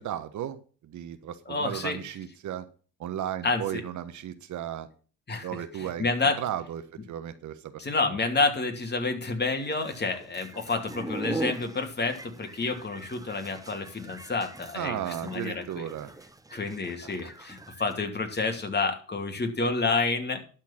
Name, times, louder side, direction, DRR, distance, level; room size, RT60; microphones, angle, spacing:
voice 1, 0.0-2.7 3.0-4.9 5.4-8.2 14.7-16.1, right 10 dB, 55° right, 10 dB, 1.3 m, -35 dB
voice 2, 1.5-2.0 3.4-3.8 5.3-5.5 5.8-6.4 7.8-15.8 16.5-20.5, left 3 dB, 30° left, 4 dB, 2.7 m, -29 dB
sound 1, 9.5-17.9, right 2 dB, 10° right, 1.1 m, -41 dB
12.0 x 4.5 x 7.5 m, 0.39 s
hypercardioid pair, 65°, 35 cm